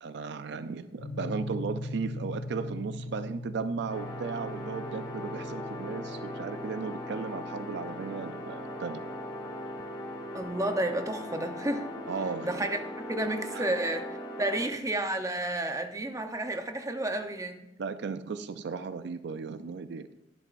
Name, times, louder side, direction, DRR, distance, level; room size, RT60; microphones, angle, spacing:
voice 1, 0.0-9.0 12.1-12.6 13.5-13.8 17.8-20.1, right 5 dB, 65° right, 11 dB, 0.4 m, -36 dB
sound 1, 1.0-11.1, left 1 dB, 45° left, 0.8 m, -41 dB
sound 2, 3.9-14.7, left 1 dB, 25° left, 1.8 m, -39 dB
voice 2, 10.3-11.9 12.4-12.8 13.1-14.1 14.4-17.7, right 1 dB, 20° right, 5 dB, 0.8 m, -31 dB
11.0 x 11.0 x 2.5 m, 0.91 s
head